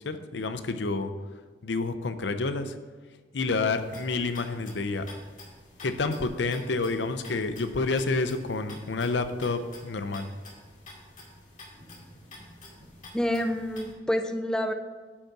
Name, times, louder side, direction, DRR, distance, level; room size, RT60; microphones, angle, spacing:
voice 1, 0.0-1.1 1.6-2.7 3.3-5.1 5.8-10.3, left 3 dB, 75° left, 9 dB, 0.6 m, -29 dB
sound 1, 3.7-13.9, left 2 dB, 45° left, 2.3 m, -49 dB
voice 2, 13.1-14.7, left 1 dB, 5° left, 6 dB, 0.4 m, -28 dB
8.5 x 5.4 x 5.8 m, 1.4 s
head